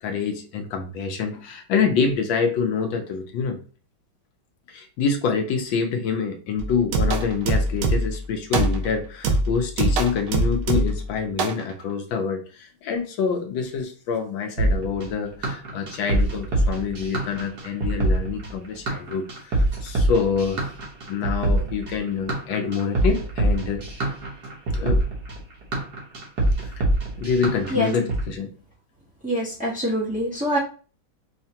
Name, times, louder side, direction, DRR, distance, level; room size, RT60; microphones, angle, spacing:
voice 1, 0.0-3.6 4.7-20.7 21.1-23.8 24.7-25.0 26.6-26.7 27.2-28.5, left 5 dB, 75° left, 4 dB, 1.3 m, -26 dB
sound 1, 6.6-8.2 8.5-8.9 9.2-11.1 11.4-11.6, right 2 dB, 80° right, 1.5 m, -23 dB
sound 2, 14.6-28.2, right 1 dB, 55° right, 1.5 m, -24 dB
voice 2, 29.2-30.6, equal, 10° right, -7 dB, 0.5 m, -24 dB
5.6 x 2.2 x 2.8 m, 0.37 s
omnidirectional pair, 2.3 m